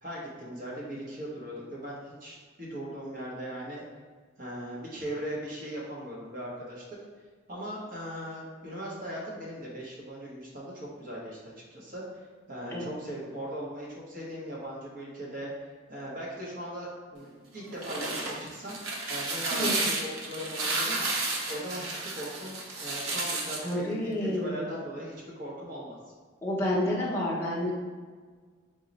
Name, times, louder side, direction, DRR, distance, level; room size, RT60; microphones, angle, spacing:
voice 1, 0.0-3.8 4.4-6.8 7.5-11.4 11.7-12.0 12.5-17.3 17.5-21.1 21.5-26.0, equal, 45° right, -4 dB, 0.8 m, -39 dB
sound 1, 17.6-23.7, right 3 dB, 85° right, 0.6 m, -32 dB
voice 2, 23.6-24.7 26.4-27.7, left 1 dB, 10° left, -7 dB, 0.6 m, -29 dB
3.8 x 2.0 x 3.9 m, 1.5 s
head